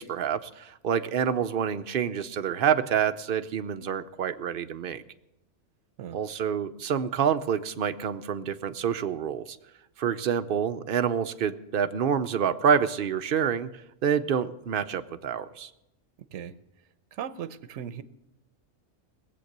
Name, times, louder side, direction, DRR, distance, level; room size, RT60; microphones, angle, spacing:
voice 1, 0.0-5.0 6.1-9.6 10.0-13.7 14.0-15.7, right 8 dB, 55° right, 10 dB, 0.7 m, -27 dB
voice 2, 17.1-18.0, right 9 dB, 80° right, 14 dB, 1.0 m, -37 dB
18.5 x 7.8 x 6.6 m, 0.87 s
omnidirectional pair, 1.2 m